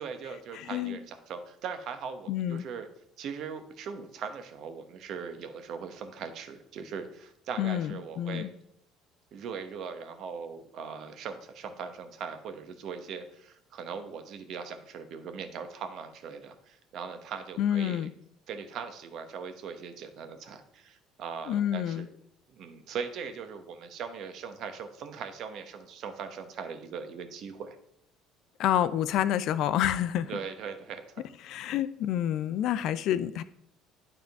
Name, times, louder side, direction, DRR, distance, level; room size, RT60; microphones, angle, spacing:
voice 1, 0.0-2.9 3.2-8.5 9.3-18.1 18.5-22.1 22.5-27.8 30.3-31.2, right 6 dB, 60° right, 8 dB, 0.9 m, -40 dB
voice 2, 0.5-1.0 2.3-2.6 7.6-8.5 17.6-18.1 21.5-22.1 28.6-30.3 31.4-33.4, left 11 dB, 70° left, 14 dB, 0.4 m, -28 dB
9.5 x 3.7 x 4.6 m, 0.72 s
supercardioid pair, 90°, 0 cm